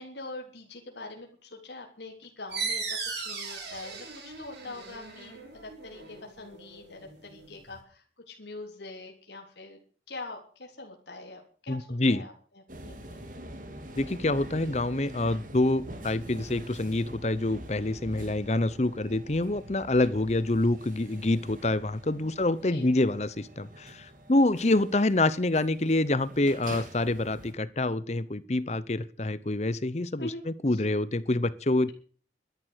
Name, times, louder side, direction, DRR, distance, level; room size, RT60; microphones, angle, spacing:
voice 1, 0.0-9.8 10.1-13.2 22.1-22.4 22.7-22.8 30.2-30.4 30.7-30.8, left 2 dB, 80° left, 1 dB, 3.5 m, -44 dB
sound 1, 2.5-7.8, right 4 dB, 80° right, 6.1 m, -38 dB
voice 2, 11.7-12.2 14.0-31.9, left 2 dB, 40° left, 17 dB, 0.8 m, -26 dB
sound 2, 12.7-27.5, right 1 dB, 45° right, 2.6 m, -45 dB
13.0 x 11.0 x 8.0 m, 0.43 s
head